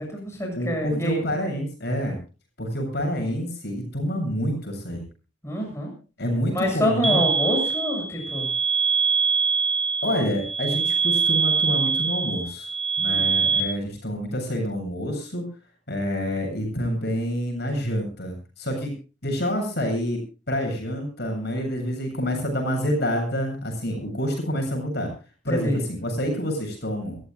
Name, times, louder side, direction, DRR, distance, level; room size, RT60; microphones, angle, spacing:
voice 1, 0.0-1.2 5.4-5.9 6.5-8.5 13.0-13.3 25.5-25.8, equal, 15° left, 0 dB, 7.5 m, -26 dB
voice 2, 0.5-2.2 2.6-5.0 6.2-7.3 10.0-12.7 13.0-15.5 15.9-18.9 19.2-20.2 20.5-25.1 25.4-27.2, equal, 55° left, 3 dB, 7.9 m, -27 dB
sound 1, 7.0-13.6, right 5 dB, 30° right, 2.5 m, -23 dB
28.5 x 14.5 x 2.3 m, 0.35 s
head